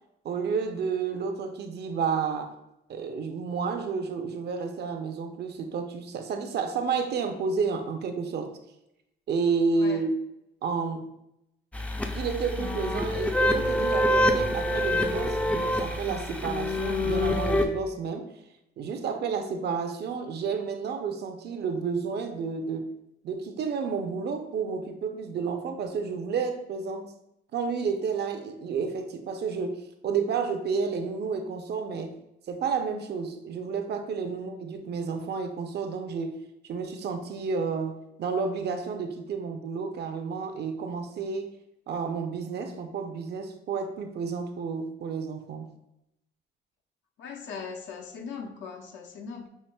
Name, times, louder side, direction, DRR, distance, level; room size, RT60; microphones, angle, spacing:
voice 1, 0.2-2.5 2.9-8.5 9.3-10.1 10.6-11.1 12.1-18.3 18.8-22.9 23.2-27.1 27.5-32.2 32.5-36.4 36.6-41.5 41.9-45.7, right 5 dB, 55° right, 6 dB, 0.5 m, -31 dB
sound 1, 11.7-17.7, left 1 dB, 5° left, 0.4 m, -26 dB
voice 2, 47.2-49.5, left 5 dB, 70° left, 4 dB, 0.6 m, -40 dB
5.6 x 2.5 x 2.2 m, 0.84 s
cardioid pair, 90°, 20 cm